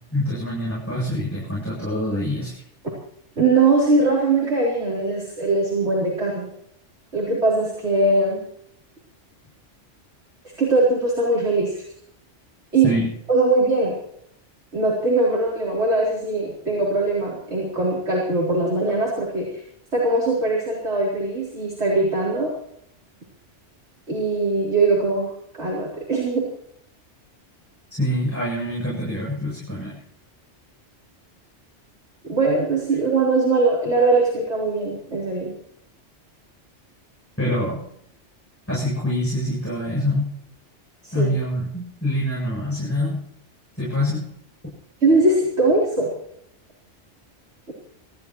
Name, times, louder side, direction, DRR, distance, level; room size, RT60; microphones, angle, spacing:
voice 1, 0.1-2.5 12.8-13.1 28.0-30.0 37.4-37.8 38.7-40.3 41.1-43.2 43.7-44.2, left 1 dB, 10° left, -6 dB, 7.9 m, -25 dB
voice 2, 3.4-6.5 7.1-8.4 10.6-11.8 12.7-12.9 13.3-13.9 14.7-19.6 19.9-22.5 24.1-25.3 25.6-26.5 32.2-35.5 41.0-41.3 45.0-46.1, right 3 dB, 70° right, -5 dB, 4.2 m, -21 dB
26.0 x 14.5 x 3.1 m, 0.72 s
omnidirectional pair, 1.2 m